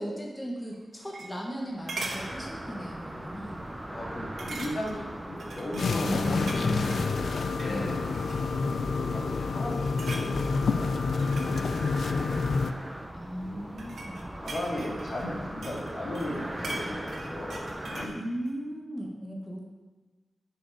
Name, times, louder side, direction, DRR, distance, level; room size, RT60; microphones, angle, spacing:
voice 1, 0.0-3.6 6.0-7.2 7.7-8.2 13.1-14.3 18.1-19.6, equal, 10° left, -2 dB, 1.4 m, -36 dB
sound 1, 0.7-1.6 1.9-2.3 2.8-3.0 3.3-3.4 4.4-5.0 5.4-7.0 7.5-7.8 8.1-8.7 9.2-9.4 9.7-10.3 11.0-12.6 13.4-15.9 16.1-18.2 18.5-18.6, right 2 dB, 80° right, 1.3 m, -41 dB
sound 2, 1.7-18.1, right 1 dB, 15° right, 0.7 m, -39 dB
voice 2, 3.9-7.2 7.6-8.0 9.0-12.4 13.4-13.6 14.4-18.2, left 1 dB, 60° left, -3 dB, 1.9 m, -37 dB
sound 3, 5.8-12.7, left 4 dB, 75° left, 0.4 m, -28 dB
10.0 x 5.5 x 4.9 m, 1.3 s
wide cardioid pair, 110°, 0 cm